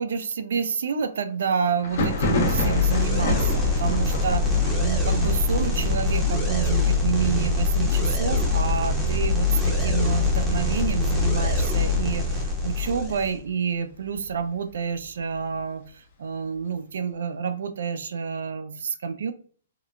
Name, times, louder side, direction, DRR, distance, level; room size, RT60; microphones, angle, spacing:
voice 1, 0.0-4.5 4.8-15.8 16.2-19.3, right 6 dB, 75° right, 10 dB, 0.4 m, -28 dB
Thunder, 1.8-11.3 11.6-12.3 12.5-13.5 13.9-15.6, left 2 dB, 50° left, 0.8 m, -32 dB
sound 1, 1.9-13.4, left 3 dB, 5° right, 0.6 m, -24 dB
3.6 x 2.3 x 2.2 m, 0.43 s
hypercardioid pair, 170°, 0 cm